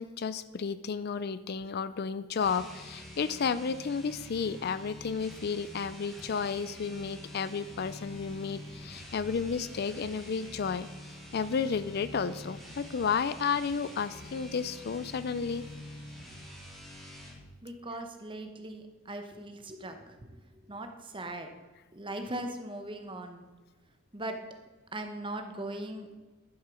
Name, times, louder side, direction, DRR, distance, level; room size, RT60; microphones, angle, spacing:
voice 1, 0.0-10.9 11.3-15.6, left 6 dB, 50° left, 15 dB, 0.4 m, -32 dB
sound 1, 2.3-17.4, left 1 dB, ahead, 3.6 m, -46 dB
voice 2, 17.6-20.3 20.6-21.5 21.9-23.5 24.1-24.4 24.9-26.1, right 1 dB, 25° right, 6 dB, 1.1 m, -39 dB
11.0 x 7.4 x 6.2 m, 1.2 s
head